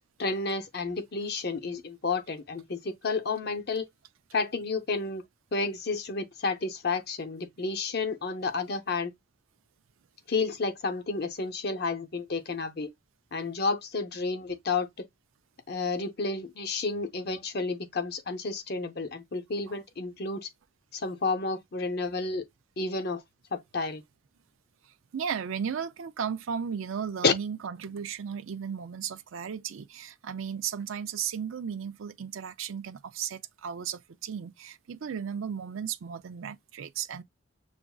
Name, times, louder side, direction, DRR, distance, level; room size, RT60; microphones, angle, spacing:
voice 1, 0.2-3.8 4.3-5.2 5.5-9.1 10.3-12.9 13.3-15.1 15.7-20.5 20.9-22.4 22.8-23.2 23.5-24.0 27.2-27.3, left 4 dB, 50° left, 0.7 m, -31 dB
voice 2, 25.1-37.2, right 7 dB, 80° right, 0.4 m, -35 dB
7.0 x 2.5 x 2.3 m
head